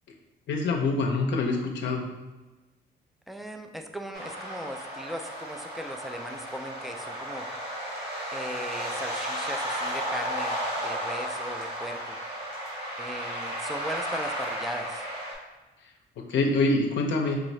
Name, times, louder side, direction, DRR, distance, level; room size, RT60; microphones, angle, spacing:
voice 1, 0.5-2.0 16.2-17.4, left 3 dB, 70° left, 1 dB, 0.6 m, -25 dB
voice 2, 3.3-7.5 8.3-12.2 13.0-15.0, equal, ahead, 5 dB, 0.3 m, -38 dB
sound 1, 4.1-15.3, equal, 55° right, 1.4 m, -34 dB
4.7 x 2.6 x 3.1 m, 1.2 s
cardioid pair, 90°, 20 cm